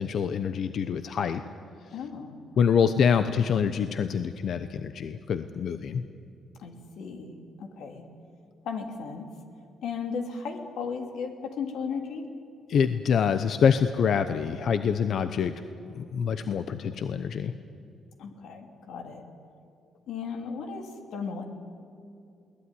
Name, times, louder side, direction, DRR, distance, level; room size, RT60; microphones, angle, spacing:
voice 1, 0.0-1.4 2.6-6.0 12.7-15.5 15.9-17.5, left 7 dB, 65° left, 10 dB, 0.9 m, -25 dB
voice 2, 1.9-2.4 6.6-8.1 8.6-9.2 9.8-12.2 18.2-19.2 20.1-21.4, left 5 dB, 80° left, 4 dB, 2.9 m, -35 dB
22.0 x 18.0 x 9.9 m, 2.5 s
cardioid pair, 90°, 0 cm